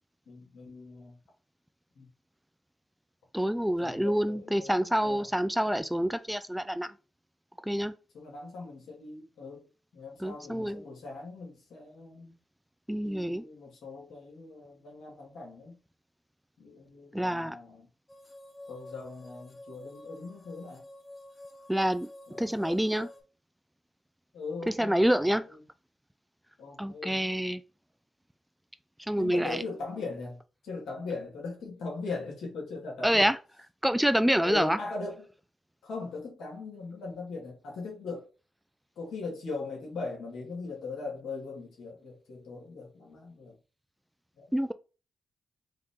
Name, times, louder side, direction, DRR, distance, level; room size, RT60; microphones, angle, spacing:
voice 1, 0.3-1.2 2.0-2.1 3.8-4.7 5.0-5.2 8.1-9.7 9.9-12.4 12.9-15.7 16.6-17.9 18.7-20.8 22.3-22.5 24.3-25.4 26.6-27.2 29.2-33.3 34.4-35.2 35.8-38.3 39.0-43.6 44.4-44.5, left 3 dB, 80° left, 2.1 m, -40 dB
voice 2, 3.3-6.9 7.6-7.9 10.2-10.9 12.9-13.4 17.1-17.6 21.7-22.1 22.4-23.1 24.7-25.4 26.8-27.6 29.1-29.6 33.0-33.4 33.8-34.8 44.5-44.7, equal, 5° right, 0.4 m, -27 dB
sound 1, 18.1-23.2, left 1 dB, 30° left, 1.5 m, -49 dB
4.8 x 2.8 x 3.6 m
supercardioid pair, 50°, 0 cm